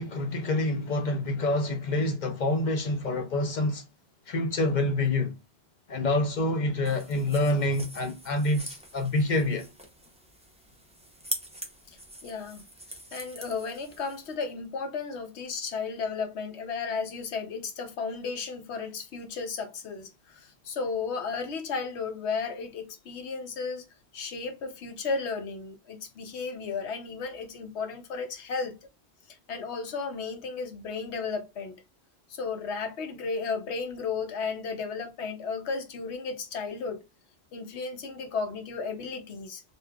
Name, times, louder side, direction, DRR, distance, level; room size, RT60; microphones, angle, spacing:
voice 1, 0.0-3.8 4.3-5.3 5.9-9.7, left 2 dB, 50° left, 0.6 m, -27 dB
sound 1, 6.8-14.3, right 1 dB, 10° right, 0.4 m, -43 dB
voice 2, 12.2-12.6 13.1-23.8 24.1-28.7 29.3-31.8 32.3-37.0 37.5-39.6, left 4 dB, 75° left, 1.0 m, -34 dB
3.4 x 2.6 x 2.2 m
omnidirectional pair, 1.1 m